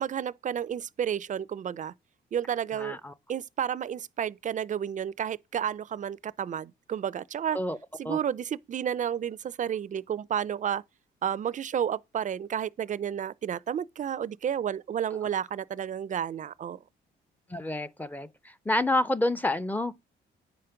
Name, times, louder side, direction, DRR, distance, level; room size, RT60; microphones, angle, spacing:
voice 1, 0.0-1.9 2.3-3.0 3.3-7.6 8.0-10.8 11.2-16.8, right 9 dB, 40° right, 0.5 m, -31 dB
voice 2, 2.8-3.1 7.5-7.8 8.0-8.2 17.5-18.3 18.7-19.9, left 1 dB, 10° left, 0.6 m, -28 dB
9.3 x 5.1 x 5.8 m
cardioid pair, 90°, 20 cm